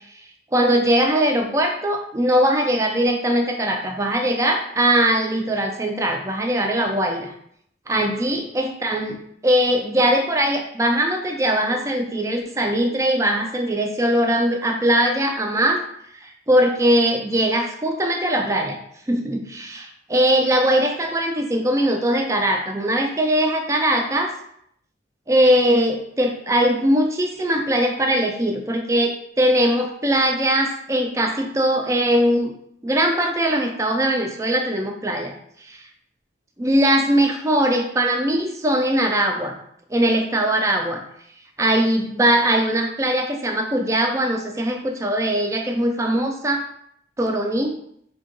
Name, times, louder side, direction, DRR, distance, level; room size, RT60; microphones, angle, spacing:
voice 1, 0.5-7.3 7.9-15.8 16.2-18.8 19.1-24.3 25.3-32.5 32.8-35.3 35.7-35.8 36.6-39.6 39.9-41.0 41.6-46.6 47.2-47.7, right 1 dB, 15° right, 3 dB, 0.3 m, -20 dB
3.6 x 2.2 x 3.8 m, 0.71 s
head